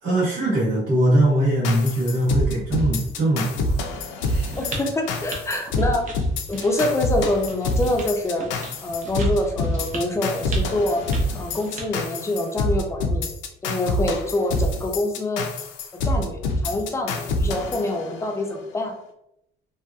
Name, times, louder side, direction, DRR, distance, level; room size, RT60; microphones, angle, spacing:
voice 1, 0.0-3.8 4.2-4.5, right 1 dB, 75° right, -8 dB, 1.2 m, -21 dB
sound 1, 1.6-18.5, left 1 dB, 80° left, 0.5 m, -26 dB
sound 2, 4.5-12.0, right 1 dB, 40° right, 0.6 m, -38 dB
voice 2, 4.6-6.1 6.5-8.5 8.8-11.0 11.3-13.2 13.6-15.4 15.9-18.9, left 2 dB, 15° left, 2 dB, 0.4 m, -25 dB
2.8 x 2.3 x 2.3 m, 0.79 s
cardioid pair, 140°, 19 cm